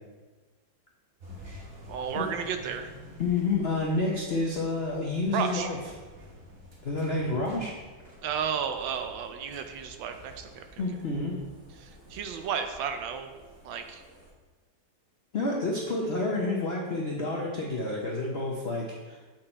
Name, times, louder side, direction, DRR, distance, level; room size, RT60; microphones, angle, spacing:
sound 1, 1.2-14.3, equal, 40° right, 1.4 m, -50 dB
voice 1, 1.9-2.9 5.3-5.7 8.2-10.8 11.8-13.3 13.6-14.0, right 7 dB, 75° right, 7 dB, 1.3 m, -33 dB
voice 2, 3.2-5.8 6.8-7.7 10.8-11.3 15.3-19.2, left 2 dB, 60° left, -3 dB, 0.6 m, -29 dB
7.8 x 4.4 x 4.3 m, 1.3 s
omnidirectional pair, 2.2 m